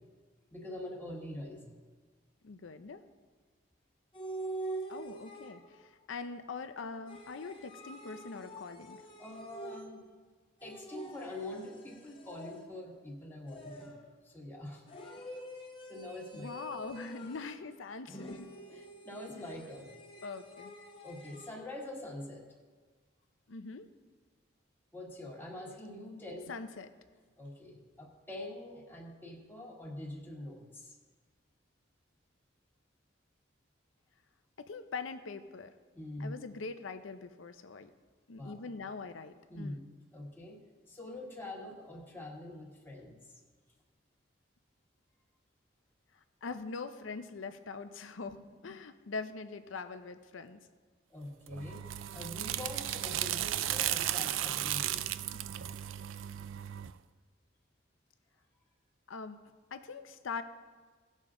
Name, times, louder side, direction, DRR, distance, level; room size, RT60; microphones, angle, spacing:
voice 1, 0.5-1.8 9.2-10.0 10.6-13.9 14.2-14.8 15.9-16.5 18.7-19.9 21.0-22.5 24.9-26.5 27.4-31.0 35.9-36.3 38.4-38.6 39.5-39.8 40.1-40.6 40.9-43.3 48.3-48.5 51.1-51.8 52.1-55.1, left 1 dB, 10° left, -2 dB, 1.5 m, -44 dB
voice 2, 2.4-3.0 4.9-9.0 16.3-18.5 19.3-19.4 20.2-20.7 23.5-23.9 26.5-26.9 34.6-35.7 36.2-37.9 38.3-39.8 46.4-48.4 48.6-50.6 55.3-55.4 59.1-59.4 59.7-60.4, left 4 dB, 85° left, 10 dB, 0.6 m, -42 dB
sound 1, 4.1-5.9 7.1-10.1 10.6-12.9 13.5-14.2 14.9-17.7 18.1-21.6, right 1 dB, 25° left, 1.1 m, -46 dB
sound 2, 51.5-56.9, right 12 dB, 90° right, 0.4 m, -35 dB
18.0 x 6.4 x 3.7 m, 1.5 s
head